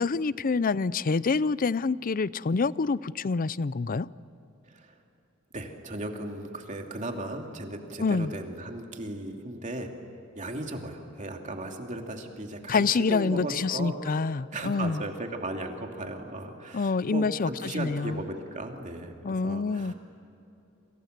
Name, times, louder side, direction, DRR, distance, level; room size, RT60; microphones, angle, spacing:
voice 1, 0.0-4.1 8.0-8.3 12.7-15.0 16.7-18.2 19.2-19.9, left 4 dB, 45° left, 19 dB, 0.5 m, -27 dB
voice 2, 5.5-9.9 10.3-19.9, right 1 dB, 35° right, 3 dB, 2.8 m, -36 dB
28.5 x 27.0 x 6.7 m, 2.9 s
head